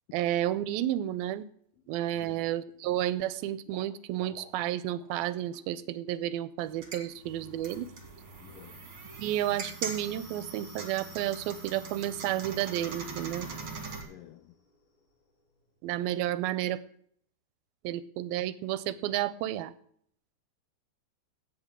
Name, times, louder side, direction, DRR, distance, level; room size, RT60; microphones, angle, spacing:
voice 1, 0.1-1.5 1.9-7.9 9.2-13.5 15.8-16.8 17.8-19.7, right 13 dB, 80° right, 2.3 m, -31 dB
Water / Liquid, 1.1-1.4 1.7-2.4 2.7-5.2 5.5-5.7 6.1-6.2, left 2 dB, 45° left, 3.2 m, -56 dB
sound 1, 6.6-14.0, right 4 dB, 40° right, 2.3 m, -42 dB
voice 2, 8.4-8.9 14.0-14.6, left 13 dB, 85° left, 1.9 m, -51 dB
sound 2, 9.0-16.3, left 4 dB, 70° left, 5.6 m, -60 dB
16.5 x 8.3 x 3.7 m
omnidirectional pair, 4.5 m